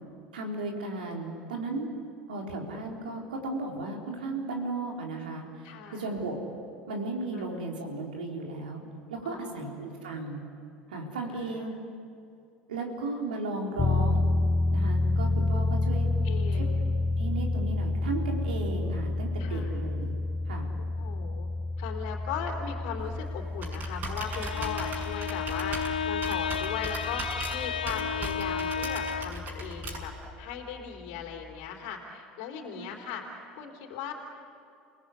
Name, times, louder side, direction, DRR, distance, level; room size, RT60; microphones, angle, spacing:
voice 1, 0.3-1.9 2.3-6.4 6.9-8.8 9.1-10.4 10.9-11.7 12.7-14.2 14.7-16.1 16.6-16.7 17.2-20.1 20.5-20.7 32.7-32.9, right 2 dB, 80° right, 1 dB, 3.9 m, -35 dB
voice 2, 5.6-6.1 7.3-7.4 9.2-9.6 11.3-11.7 16.2-16.8 19.4-19.8 20.8-21.5 21.8-25.8 26.0-34.1, left 7 dB, 70° left, 1 dB, 3.4 m, -38 dB
sound 1, 13.8-30.1, left 2 dB, 20° left, 1.4 m, -30 dB
Computer keyboard, 23.0-30.3, right 2 dB, 45° right, 6.5 m, -39 dB
Bowed string instrument, 24.1-29.5, left 7 dB, 90° left, 0.8 m, -33 dB
29.0 x 18.5 x 8.4 m, 2.5 s
hypercardioid pair, 75°, 5 cm